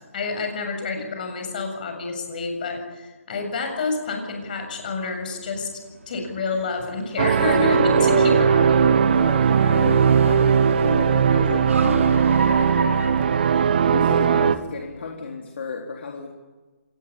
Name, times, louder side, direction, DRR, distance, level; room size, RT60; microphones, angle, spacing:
voice 1, 0.0-5.7 6.1-8.3 8.6-8.7, left 4 dB, 35° left, 4 dB, 7.4 m, -28 dB
Car, 4.4-14.3, right 4 dB, 70° right, 5.9 m, -36 dB
sound 1, 7.2-14.6, right 7 dB, 40° right, 1.4 m, -18 dB
voice 2, 8.1-13.3 13.9-16.3, left 4 dB, 50° left, 1 dB, 3.7 m, -32 dB
26.5 x 19.5 x 9.9 m, 1.3 s
hypercardioid pair, 165°, 8 cm